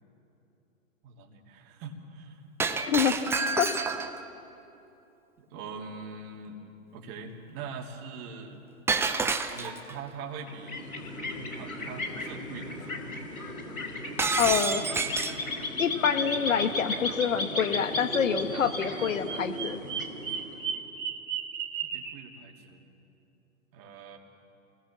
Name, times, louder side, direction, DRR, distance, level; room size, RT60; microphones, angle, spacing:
voice 1, 1.0-2.4 2.7-3.2 5.4-6.6 6.9-8.6 9.5-10.9 11.4-13.1 21.8-22.8 23.7-24.2, right 4 dB, 35° right, 1 dB, 3.3 m, -43 dB
Shatter, 2.6-4.3 8.9-9.9 14.2-15.4, right 4 dB, 5° right, 0.7 m, -28 dB
sound 1, 10.4-20.8, left 2 dB, 85° left, 4.2 m, -35 dB
voice 2, 14.4-14.8 15.8-19.8, left 7 dB, 65° left, 10 dB, 1.4 m, -26 dB
Bird vocalization bird call bird song, 18.4-22.2, right 8 dB, 55° right, 2.6 m, -36 dB
29.0 x 19.5 x 7.5 m, 2.9 s
figure-of-eight pair, 115°, 42 cm